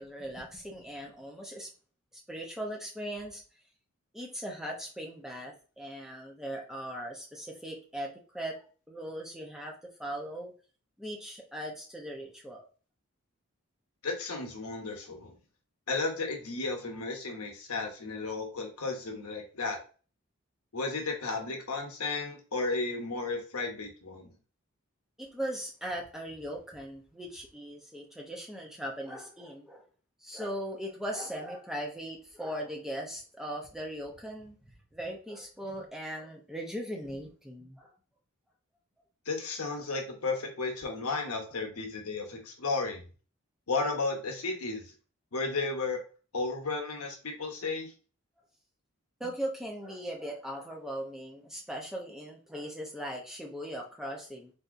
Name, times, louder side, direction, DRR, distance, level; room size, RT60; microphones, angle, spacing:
voice 1, 0.0-1.7 2.1-3.4 4.1-10.5 11.0-12.6 25.2-29.9 30.2-34.6 34.9-37.9 49.2-54.5, equal, ahead, -1 dB, 0.6 m, -39 dB
voice 2, 14.0-15.3 15.9-19.8 20.7-24.3 39.3-43.0 43.7-44.9 45.3-46.0 46.3-47.9, left 3 dB, 85° left, 2 dB, 0.9 m, -33 dB
3.5 x 2.7 x 2.5 m, 0.37 s
head